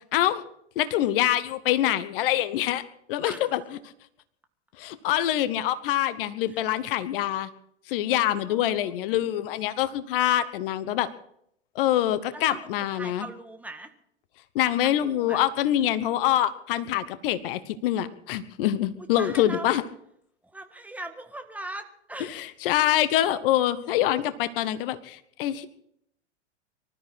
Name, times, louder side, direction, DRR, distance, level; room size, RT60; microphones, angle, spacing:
voice 1, 0.1-0.4 0.8-2.8 3.1-3.6 4.8-7.5 7.9-11.1 11.7-13.3 14.5-19.8 22.2-25.7, left 12 dB, 50° left, 14 dB, 1.1 m, -25 dB
voice 2, 8.4-8.9 12.3-13.9 14.8-15.4 19.0-19.7 20.5-22.3, right 1 dB, 5° right, 5 dB, 1.7 m, -40 dB
24.5 x 13.0 x 4.3 m, 0.71 s
figure-of-eight pair, 95°, 35 cm